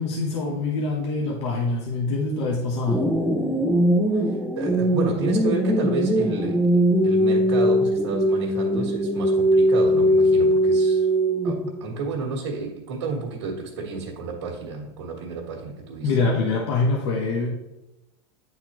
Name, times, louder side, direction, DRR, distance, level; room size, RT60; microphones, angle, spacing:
voice 1, 0.0-3.1 16.0-17.6, left 3 dB, 75° left, -1 dB, 1.1 m, -24 dB
sound 1, 2.9-11.8, equal, ahead, 0.5 m, -21 dB
voice 2, 4.1-11.1 11.4-16.2, right 4 dB, 90° right, -4 dB, 1.5 m, -31 dB
9.4 x 4.0 x 3.0 m, 0.95 s
supercardioid pair, 135°, 14 cm